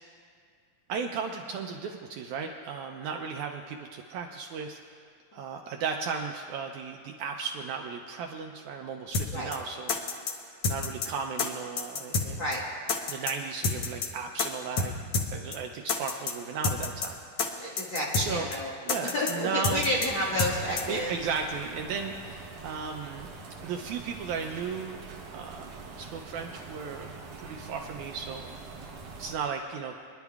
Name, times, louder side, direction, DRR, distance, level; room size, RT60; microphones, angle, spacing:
voice 1, 0.9-4.8 5.3-9.9 10.7-12.4 13.1-14.9 15.3-17.9 18.2-18.5 18.8-19.8 20.9-23.3 23.6-25.0 25.3-25.7 26.0-27.1 27.4-28.5 29.2-29.9, right 5 dB, 80° right, 3 dB, 1.8 m, -35 dB
sound 1, 9.1-9.3 9.5-9.6 9.9-10.3 10.6-11.1 11.4-11.5 11.8-12.3 12.5-12.6 12.9-13.3 13.6-14.1 14.4-14.5 14.8-14.9 15.1-15.3 15.5-15.6 15.9-16.3 16.6-17.1 17.4-17.5 17.8-18.3 18.5-18.6 18.9-19.3 19.6-20.1 20.4-20.5 20.8-20.9, left 4 dB, 80° left, 1.2 m, -28 dB
voice 2, 17.6-18.7 19.0-21.1, left 1 dB, 50° left, -6 dB, 1.5 m, -30 dB
sound 2, 20.0-29.4, right 4 dB, 65° right, 1.8 m, -44 dB
26.0 x 10.5 x 2.3 m, 2.2 s
omnidirectional pair, 3.8 m